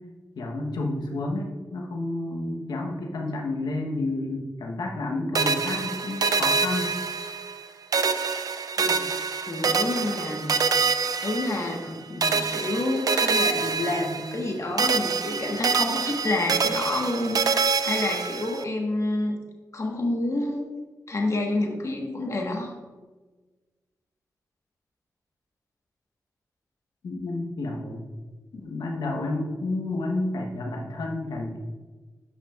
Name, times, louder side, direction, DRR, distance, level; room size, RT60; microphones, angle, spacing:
voice 1, 0.4-7.0 27.0-28.0 28.5-31.6, left 2 dB, 85° left, 1 dB, 1.1 m, -30 dB
sound 1, 5.3-7.6 7.9-11.9 12.2-14.5 14.8-18.6, right 5 dB, 65° right, 0.5 m, -26 dB
voice 2, 9.5-10.5 11.2-19.4 19.7-20.7 21.1-22.7, left 2 dB, 50° left, 1 dB, 1.4 m, -28 dB
9.5 x 5.7 x 2.5 m, 1.3 s
cardioid pair, 55°, 7 cm